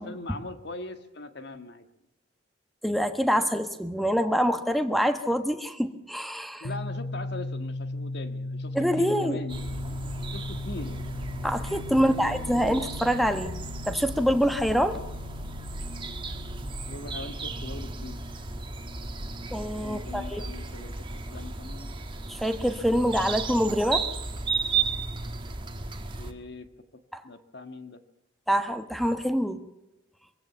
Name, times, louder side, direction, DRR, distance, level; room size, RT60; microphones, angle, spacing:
voice 1, 0.0-1.9 6.6-10.0 10.3-11.1 11.9-12.8 16.9-18.3 19.8-21.9 26.2-28.0, left 2 dB, 60° left, 8 dB, 1.7 m, -41 dB
voice 2, 2.8-6.7 8.7-9.4 11.4-13.5 13.8-15.0 19.5-20.4 22.3-24.1 27.1-27.2 28.5-29.6, equal, ahead, 8 dB, 1.3 m, -25 dB
sound 1, 6.6-20.3, left 2 dB, 85° left, 1.2 m, -39 dB
sound 2, 9.5-26.3, right 4 dB, 25° right, 1.5 m, -34 dB
24.0 x 16.0 x 7.0 m, 0.91 s
head